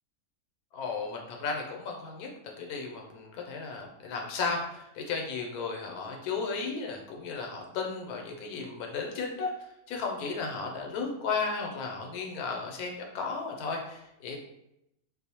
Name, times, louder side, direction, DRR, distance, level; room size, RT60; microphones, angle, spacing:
voice 1, 0.7-2.3 2.6-14.4, left 4 dB, 90° left, 1 dB, 1.1 m, -34 dB
2.6 x 2.0 x 2.7 m, 0.83 s
omnidirectional pair, 1.5 m